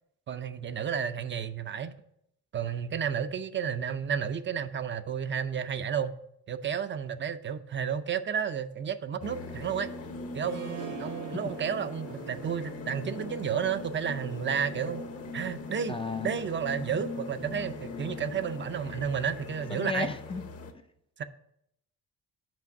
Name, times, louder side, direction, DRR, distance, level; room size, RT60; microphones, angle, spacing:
voice 1, 0.3-1.9 2.5-6.2 6.5-9.9 10.3-15.0 15.3-16.0 16.2-20.1 21.2-21.3, right 7 dB, 40° right, 0.5 m, -32 dB
sound 1, 9.2-20.7, left 3 dB, 55° left, 1.0 m, -41 dB
Harp, 10.4-15.5, right 8 dB, 80° right, 2.0 m, -46 dB
voice 2, 15.9-16.3 19.7-20.4, left 4 dB, 20° left, 0.4 m, -33 dB
6.1 x 5.0 x 5.8 m
cardioid pair, 90°, 30 cm